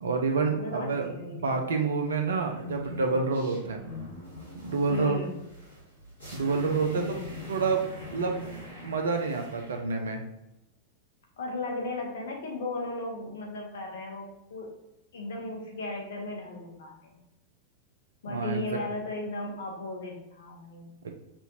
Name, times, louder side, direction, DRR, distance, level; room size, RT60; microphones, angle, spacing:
voice 1, 0.0-3.8 4.6-5.2 6.3-7.2 7.5-8.4 8.8-10.2 18.3-18.8 21.0-21.1, right 4 dB, 65° right, 4 dB, 0.6 m, -28 dB
voice 2, 0.5-1.6 3.5-3.7 4.9-5.3 6.9-7.4 11.4-14.7 15.1-17.2 18.2-20.9, left 2 dB, 60° left, 1 dB, 1.1 m, -36 dB
sound 1, 2.4-9.8, left 2 dB, 85° left, 1.5 m, -43 dB
5.6 x 2.6 x 2.9 m, 0.92 s
figure-of-eight pair, 90°, 0 cm